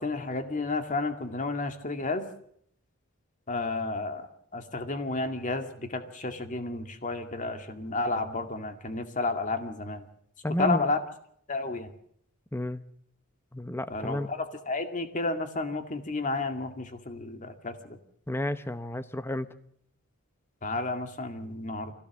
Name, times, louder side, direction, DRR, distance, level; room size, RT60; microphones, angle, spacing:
voice 1, 0.0-2.3 3.5-4.3 4.5-10.0 10.6-11.0 11.5-11.9 13.9-18.0 20.6-21.9, left 3 dB, 35° left, 7 dB, 2.2 m, -31 dB
voice 2, 10.4-10.9 12.5-12.8 13.5-14.3 18.3-19.5, left 1 dB, 10° left, 12 dB, 0.9 m, -31 dB
23.5 x 16.5 x 7.4 m, 0.68 s
head